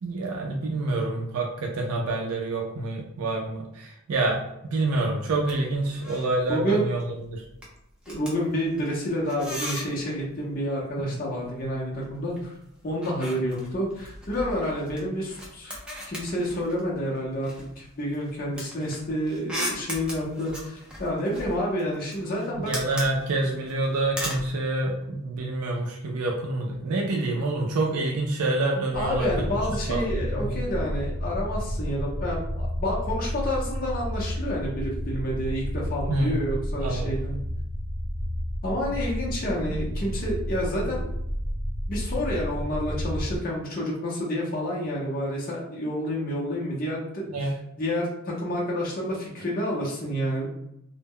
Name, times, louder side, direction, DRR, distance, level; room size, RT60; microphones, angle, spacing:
voice 1, 0.0-7.4 11.0-11.2 22.6-29.3 29.9-30.5 36.1-36.4 36.8-37.2 39.7-39.8 47.3-47.5, right 2 dB, 90° right, 0 dB, 0.4 m, -27 dB
sound 1, 5.3-5.6 5.8-6.4 6.7-7.0 7.3-10.2 11.4-12.4 12.7-17.0 17.4-24.5, equal, 5° right, 0.4 m, -38 dB
voice 2, 6.5-6.8 8.1-12.5 12.8-17.5 17.8-22.8 27.4-27.5 28.9-37.4 38.6-41.1 41.9-50.5, equal, 40° left, -3 dB, 0.6 m, -29 dB
sound 2, 28.9-43.4, equal, 30° right, 0.8 m, -31 dB
2.0 x 2.0 x 3.5 m, 0.82 s
head